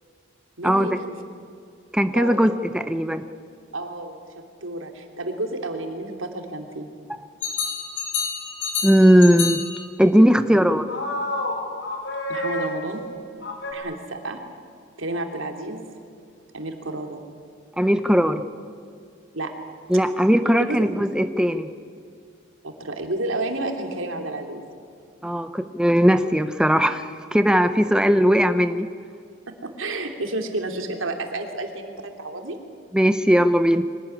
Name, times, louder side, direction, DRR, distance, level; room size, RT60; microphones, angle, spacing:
voice 1, 0.6-1.1 2.1-2.6 3.7-4.1 4.6-6.9 10.5-10.6 12.3-13.0 13.7-14.4 15.0-15.8 16.5-17.2 19.3-19.5 20.6-20.8 22.6-24.6 29.5-32.6, right 2 dB, 80° right, 4 dB, 3.0 m, -30 dB
voice 2, 1.9-3.2 8.8-9.6 10.0-10.9 17.8-18.4 19.9-21.7 25.2-28.9 32.9-33.8, equal, 5° right, 9 dB, 0.7 m, -18 dB
sound 1, 7.4-9.8 10.9-13.0 13.4-13.7, left 3 dB, 60° left, 4.6 m, -28 dB
24.5 x 18.5 x 9.9 m, 2.4 s
head